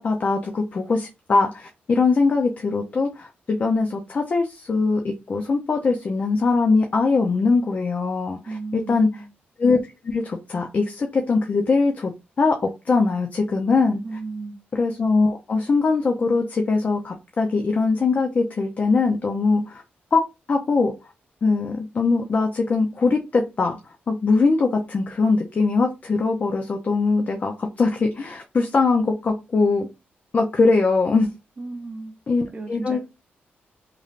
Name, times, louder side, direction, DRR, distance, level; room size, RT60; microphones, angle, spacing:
voice 1, 0.0-9.1 9.6-12.1 12.4-14.0 14.7-19.8 20.1-20.2 20.5-20.9 21.4-23.8 24.1-29.9 30.3-31.3 32.3-33.0, left 4 dB, 40° left, 0.5 m, -21 dB
voice 2, 8.4-9.3 14.0-14.6 31.6-33.1, right 3 dB, 35° right, 0.7 m, -35 dB
3.2 x 2.5 x 2.4 m
cardioid pair, 95°, 4 cm